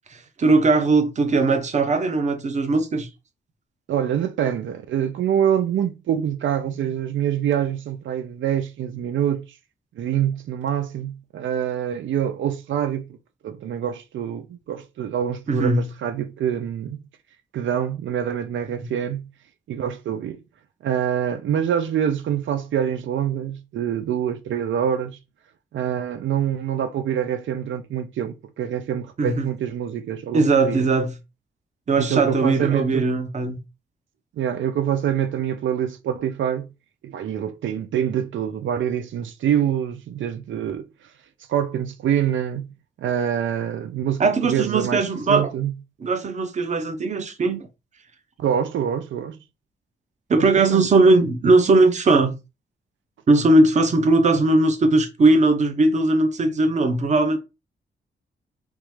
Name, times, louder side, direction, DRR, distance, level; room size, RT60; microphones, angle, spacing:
voice 1, 0.1-3.1 15.5-15.9 18.8-18.9 29.2-29.5 30.3-31.1 31.9-33.6 44.2-45.5 46.0-47.7 50.3-52.3 53.3-57.4, right 3 dB, 35° right, 0.7 m, -19 dB
voice 2, 3.9-9.6 10.0-13.0 13.4-17.0 17.5-19.2 19.7-20.4 20.8-25.2 25.7-30.9 32.0-33.1 34.4-36.7 37.0-40.9 41.5-42.7 43.0-45.7 48.4-49.4 50.4-50.8, right 9 dB, 85° right, 0.5 m, -25 dB
3.6 x 3.0 x 3.1 m
wide cardioid pair, 165°, 19 cm